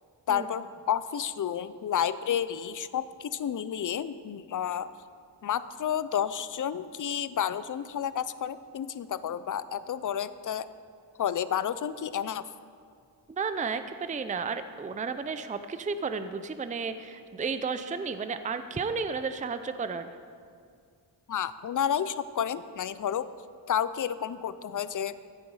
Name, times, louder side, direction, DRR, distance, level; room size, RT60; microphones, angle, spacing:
voice 1, 0.3-4.9 5.4-10.7 11.2-12.5 21.3-23.3 23.7-25.1, left 9 dB, 45° left, 15 dB, 0.5 m, -31 dB
voice 2, 13.3-20.1, right 5 dB, 15° right, 10 dB, 0.5 m, -33 dB
15.5 x 9.4 x 4.8 m, 2.2 s
cardioid pair, 90°, 44 cm